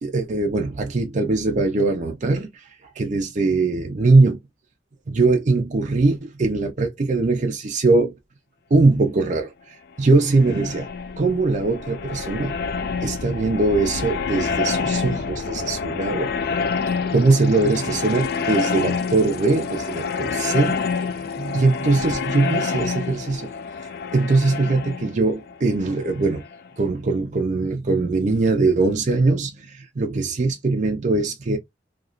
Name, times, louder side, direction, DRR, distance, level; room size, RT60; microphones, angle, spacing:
voice 1, 0.0-4.4 5.1-8.1 8.7-10.9 11.2-12.6 13.0-16.3 17.1-20.8 21.2-23.5 24.1-26.4 26.8-31.6, right 3 dB, 40° right, 0.5 m, -21 dB
sound 1, 10.0-26.7, left 5 dB, 60° left, 0.4 m, -28 dB
2.9 x 2.3 x 2.4 m
head